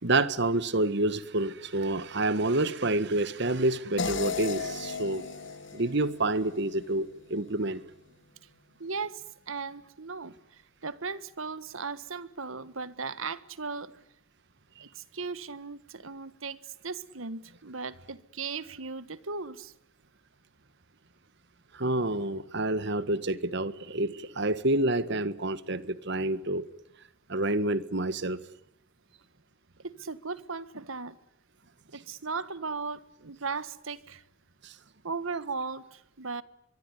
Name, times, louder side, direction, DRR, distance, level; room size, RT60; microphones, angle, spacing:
voice 1, 0.0-5.2 5.7-7.8 14.8-14.9 21.7-26.6 27.3-28.4 34.6-34.7, right 2 dB, 55° right, 1.5 m, -28 dB
sound 1, 4.0-7.1, left 5 dB, 60° left, 1.5 m, -35 dB
voice 2, 8.8-13.9 14.8-16.6 16.8-19.7 29.8-31.2 31.9-34.2 35.0-36.4, right 4 dB, 80° right, 1.5 m, -37 dB
24.5 x 23.0 x 9.9 m
head